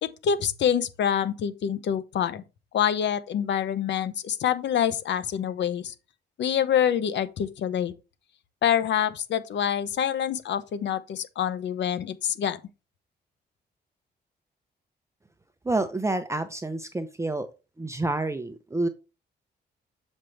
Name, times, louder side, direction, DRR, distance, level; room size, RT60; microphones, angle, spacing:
voice 1, 0.0-2.4 2.7-5.9 6.4-7.9 8.6-12.6, left 9 dB, 80° left, 0.8 m, -26 dB
voice 2, 15.6-17.5 17.8-18.9, right 2 dB, 15° right, 0.7 m, -28 dB
7.4 x 5.3 x 3.3 m
cardioid pair, 95°, 18 cm